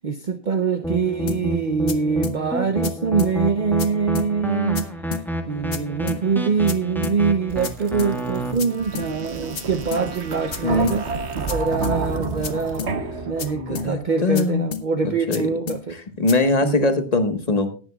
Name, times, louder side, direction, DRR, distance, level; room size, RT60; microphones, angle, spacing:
voice 1, 0.0-4.9 5.5-12.9 13.3-16.0 16.6-17.0, right 5 dB, 50° right, 8 dB, 0.8 m, -24 dB
sound 1, 0.8-8.5, equal, ahead, 1.4 m, -28 dB
sound 2, 1.3-1.4 1.9-2.0 2.2-2.4 2.8-2.9 3.2-3.3 3.8-3.9 4.2-4.3 4.8-4.9 5.1-5.3 5.7-5.8 6.1-6.2 6.7-6.8 7.0-7.2 7.6-7.7 8.0-8.1 8.6-8.7 9.0-9.1 9.6-9.7 9.9-10.1 10.5-10.6 10.9-11.0 11.5-11.6 11.8-12.0 12.4-12.5 12.8-12.9 13.4-13.5 13.8-13.9 14.4-14.5 14.7-14.9 15.3-15.4 15.7-15.8 16.3-16.4, left 7 dB, 60° left, 1.2 m, -31 dB
sound 3, 7.5-14.2, right 4 dB, 75° right, 1.6 m, -30 dB
voice 2, 10.6-10.9 13.5-14.7 15.0-15.4 16.2-17.7, left 2 dB, 35° left, 8 dB, 1.5 m, -21 dB
19.0 x 9.9 x 2.3 m, 0.38 s
omnidirectional pair, 1.1 m